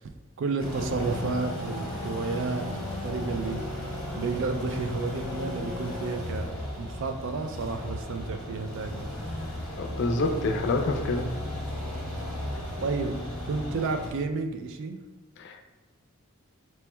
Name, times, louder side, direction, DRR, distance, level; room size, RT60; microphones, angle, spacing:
voice 1, 0.4-2.6 3.0-3.6 4.1-6.5 6.8-9.1 12.8-13.2 13.5-15.0, right 4 dB, 60° right, 6 dB, 0.4 m, -31 dB
sound 1, 0.6-14.1, left 1 dB, 5° left, 1.0 m, -35 dB
voice 2, 9.8-11.3 15.4-15.6, left 2 dB, 55° left, 4 dB, 0.4 m, -27 dB
4.3 x 3.0 x 2.2 m, 1.2 s
head